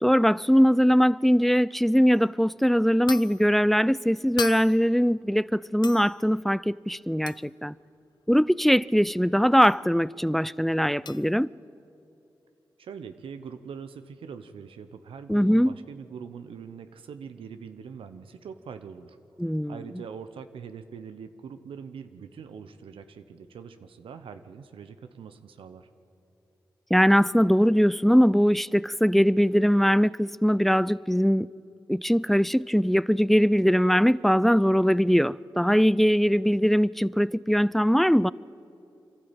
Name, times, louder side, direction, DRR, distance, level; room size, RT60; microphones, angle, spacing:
voice 1, 0.0-7.8 8.3-11.5 15.3-15.7 19.4-19.8 26.9-31.5 31.9-38.3, equal, ahead, 0.4 m, -21 dB
sound 1, 2.1-2.4 3.1-3.5 4.4-5.0 5.8-6.2 7.3-7.5 9.6-9.8 11.0-11.3, left 5 dB, 55° left, 0.5 m, -37 dB
voice 2, 12.8-19.2 19.4-25.9, right 6 dB, 85° right, 0.8 m, -43 dB
26.0 x 12.5 x 9.0 m
cardioid pair, 45°, 9 cm